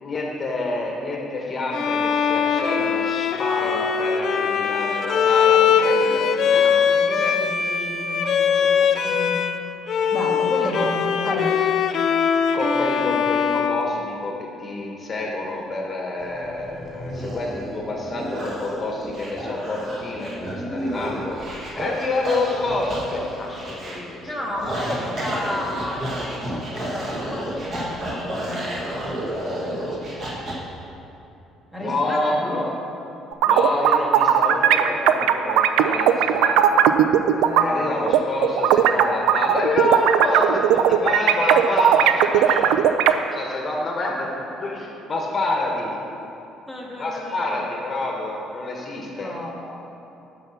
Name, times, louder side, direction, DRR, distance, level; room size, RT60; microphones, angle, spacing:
voice 1, 0.0-6.7 7.2-7.3 10.7-10.9 12.5-24.2 24.5-24.7 25.0-25.2 31.8-32.7 33.5-36.8 37.6-43.0 43.3-44.3 44.6-46.0 47.0-49.3, left 2 dB, 25° left, -1 dB, 1.2 m, -27 dB
Bowed string instrument, 1.7-9.6 9.9-14.7, left 7 dB, 45° left, 0.5 m, -21 dB
voice 2, 5.8-9.4 10.1-11.7 24.2-30.4 31.7-32.6 37.3-38.1 42.3-43.6 46.7-47.7 49.1-49.9, left 1 dB, 5° right, -3 dB, 1.2 m, -33 dB
sound 1, 16.2-30.5, equal, 35° right, 1.7 m, -31 dB
sound 2, 33.3-37.6 38.1-43.1, right 10 dB, 85° right, 0.4 m, -17 dB
10.5 x 5.7 x 5.7 m, 2.8 s
cardioid pair, 160°, 0 cm